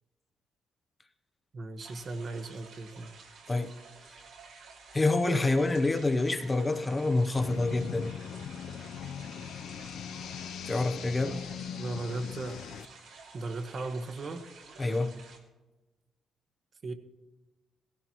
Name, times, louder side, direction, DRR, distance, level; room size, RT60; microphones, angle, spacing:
voice 1, 1.5-3.1 11.8-12.6 13.3-14.5 16.8-16.9, right 2 dB, 45° right, 1.3 m, -36 dB
sound 1, 1.8-15.4, right 4 dB, 80° right, 2.7 m, -52 dB
voice 2, 4.9-8.1 10.7-11.4 14.8-15.2, left 2 dB, 25° left, 0.8 m, -27 dB
sound 2, 7.3-12.9, left 8 dB, 75° left, 0.5 m, -40 dB
17.0 x 16.0 x 3.0 m
cardioid pair, 90°, 0 cm